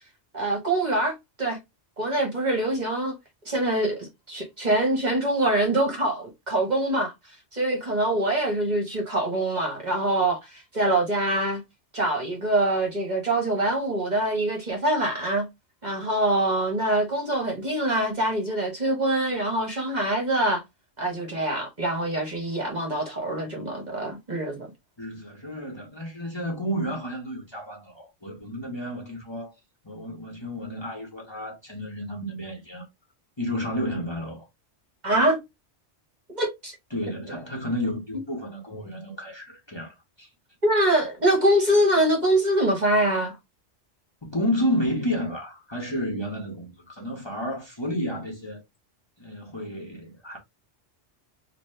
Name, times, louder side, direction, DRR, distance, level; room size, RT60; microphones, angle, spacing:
voice 1, 0.3-1.6 2.0-3.1 3.4-7.1 7.5-11.6 11.9-15.5 15.8-20.6 21.0-24.7 35.0-35.4 36.3-36.7 40.6-43.3, right 1 dB, 40° right, 1.3 m, -24 dB
voice 2, 25.0-29.5 29.8-32.8 33.4-34.5 36.9-40.3 44.2-48.6 49.2-50.4, equal, 25° left, 1.3 m, -31 dB
4.1 x 2.7 x 3.1 m
omnidirectional pair, 1.2 m